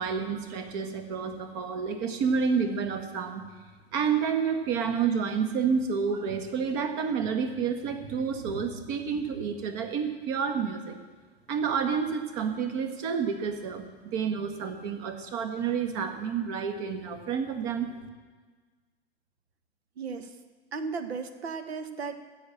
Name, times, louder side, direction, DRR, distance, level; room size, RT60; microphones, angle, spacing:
voice 1, 0.0-3.4 3.9-11.0 11.5-17.9, right 6 dB, 40° right, 7 dB, 1.6 m, -29 dB
voice 2, 20.0-20.4 20.7-22.2, right 5 dB, 65° right, 10 dB, 1.2 m, -35 dB
15.5 x 6.2 x 7.6 m, 1.4 s
figure-of-eight pair, 100°, 34 cm